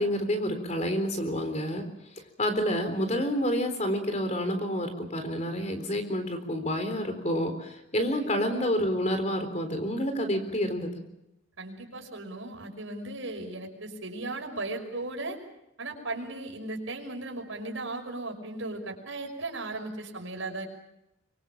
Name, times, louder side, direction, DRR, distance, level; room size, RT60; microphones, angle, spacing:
voice 1, 0.0-1.8 2.4-10.9, equal, 35° left, 7 dB, 3.9 m, -28 dB
voice 2, 11.6-15.4 15.8-20.7, right 2 dB, 85° right, 3 dB, 5.8 m, -36 dB
24.0 x 24.0 x 7.4 m, 0.86 s
head